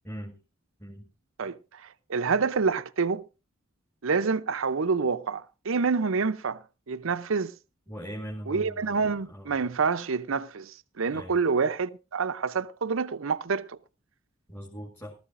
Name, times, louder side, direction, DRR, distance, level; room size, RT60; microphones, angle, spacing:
voice 1, 0.0-0.4 0.8-1.1 7.9-9.6 11.1-11.4 14.5-15.2, equal, 10° left, 2.1 m, -40 dB
voice 2, 1.4-3.2 4.0-7.5 8.5-13.8, right 5 dB, 70° right, 0.6 m, -27 dB
19.5 x 13.5 x 2.6 m
head